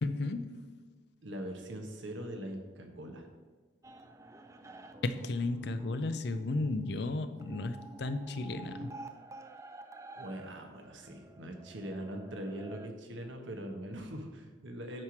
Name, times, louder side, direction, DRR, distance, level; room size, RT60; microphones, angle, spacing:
voice 1, 0.0-0.7 5.0-8.9, left 2 dB, 60° left, 10 dB, 0.5 m, -34 dB
voice 2, 1.2-3.3 10.1-15.0, right 1 dB, 75° right, 3 dB, 1.1 m, -42 dB
sound 1, 3.8-12.9, right 2 dB, 15° right, 0.3 m, -50 dB
8.9 x 3.2 x 5.8 m, 1.4 s
head